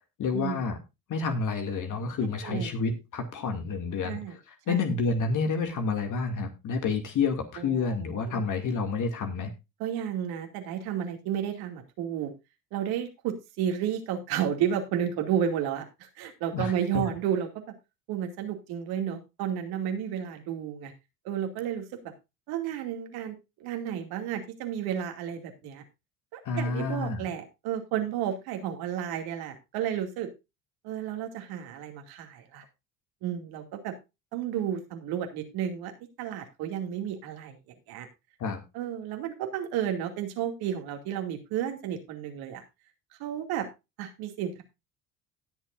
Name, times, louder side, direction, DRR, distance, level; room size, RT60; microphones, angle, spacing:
voice 1, 0.2-0.8 1.1-9.5 16.5-17.0 26.4-27.3 38.4-38.6, left 4 dB, 50° left, 5 dB, 2.4 m, -29 dB
voice 2, 4.0-4.3 4.7-4.8 7.6-8.4 9.8-12.3 12.7-17.5 18.1-20.9 21.2-21.9 22.5-25.8 26.3-30.3 30.8-32.6 33.2-33.9 34.3-35.9 36.2-37.6 37.9-38.1 38.7-42.6 43.2-43.7 44.0-44.6, right 9 dB, 65° right, 4 dB, 2.5 m, -32 dB
18.0 x 7.4 x 2.6 m, 0.25 s
hypercardioid pair, 65°, 40 cm